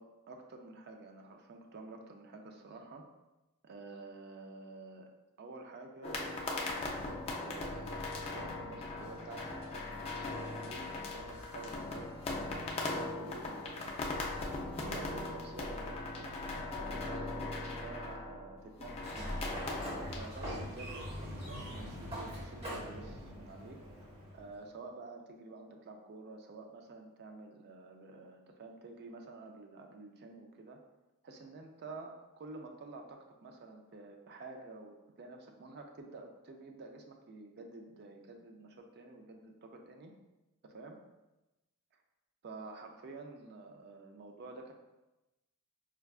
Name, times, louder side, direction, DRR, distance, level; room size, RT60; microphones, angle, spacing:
voice 1, 0.0-3.0 3.6-5.1 5.4-13.9 14.2-23.8 24.3-30.8 31.2-40.1 40.6-41.0 41.9-42.0 42.4-44.7, right 3 dB, 45° right, 3 dB, 0.4 m, -50 dB
sound 1, 6.0-20.2, left 2 dB, 25° left, 0.4 m, -39 dB
sound 2, 9.0-12.9, equal, 65° right, 0.8 m, -58 dB
Sliding door, 18.9-24.6, equal, 30° right, 0.9 m, -42 dB
4.5 x 2.3 x 2.3 m, 1.0 s
head